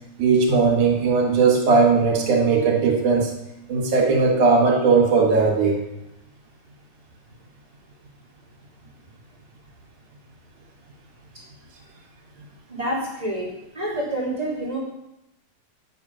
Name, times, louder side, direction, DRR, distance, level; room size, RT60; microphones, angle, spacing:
voice 1, 0.2-3.3 3.7-5.8, right 4 dB, 80° right, 1 dB, 3.1 m, -18 dB
voice 2, 12.7-13.5 13.7-14.8, right 1 dB, 10° right, -6 dB, 3.1 m, -27 dB
9.4 x 7.6 x 6.1 m, 0.87 s
omnidirectional pair, 3.5 m